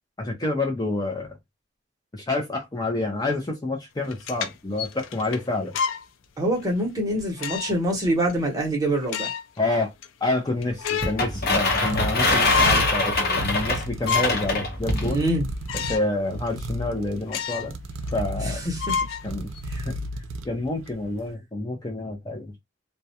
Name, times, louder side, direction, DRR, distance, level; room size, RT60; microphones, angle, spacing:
voice 1, 0.2-1.3 2.1-5.7 9.6-9.9 10.2-15.2 15.9-17.7 18.1-18.6 19.2-19.5 19.8-19.9 20.4-22.6, left 2 dB, 20° left, 0.5 m, -28 dB
sound 1, 4.0-6.1 6.6-6.7 7.4-7.9 8.3-8.4 8.9-9.6 10.0-10.1 10.5-11.2 11.6-12.1 12.4-12.8 13.3-13.4 13.8-14.5 14.9-15.0 15.7-16.1 16.5-16.6 17.3-17.8 18.1-18.2 18.8-19.8, left 6 dB, 75° left, 0.4 m, -29 dB
voice 2, 6.4-9.3 15.1-15.5 18.4-18.8, right 1 dB, 20° right, 0.9 m, -25 dB
sound 2, 10.6-21.1, right 1 dB, 75° right, 0.4 m, -34 dB
sound 3, 11.0-15.1, left 2 dB, 55° left, 0.8 m, -23 dB
2.3 x 2.1 x 2.7 m
head